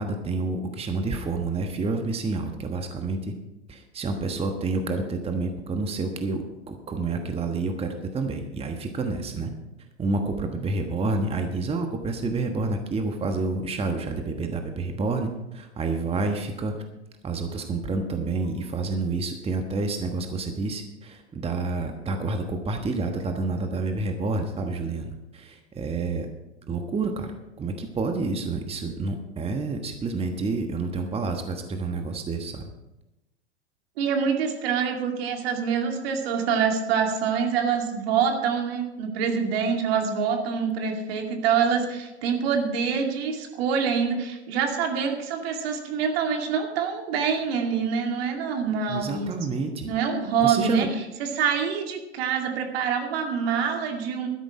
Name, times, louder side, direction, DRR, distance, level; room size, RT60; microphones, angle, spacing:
voice 1, 0.0-3.3 3.7-9.5 10.0-15.3 15.5-16.8 17.2-26.3 26.7-32.6 48.9-49.9 50.4-50.9, right 3 dB, 15° right, 5 dB, 1.3 m, -29 dB
voice 2, 34.0-49.3 49.8-54.3, right 6 dB, 60° right, 4 dB, 2.4 m, -26 dB
12.5 x 10.5 x 4.8 m, 0.96 s
hypercardioid pair, 95°, 33 cm